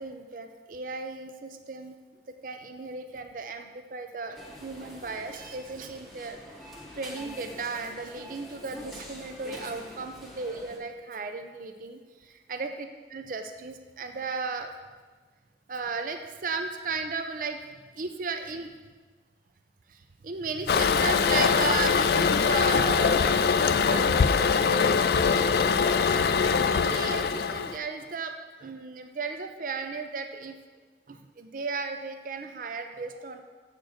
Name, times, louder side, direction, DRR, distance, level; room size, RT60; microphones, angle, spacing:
voice 1, 0.0-1.9 2.3-6.4 7.0-12.7 13.1-14.7 15.7-17.6 17.9-18.7 19.9-24.9 25.2-28.3 28.6-30.6 31.1-33.4, right 4 dB, 45° right, 7 dB, 0.5 m, -35 dB
sound 1, 4.4-10.8, left 1 dB, ahead, 1.1 m, -45 dB
Toilet flush, 20.7-27.8, left 5 dB, 55° left, 0.3 m, -23 dB
7.6 x 4.4 x 6.4 m, 1.4 s
head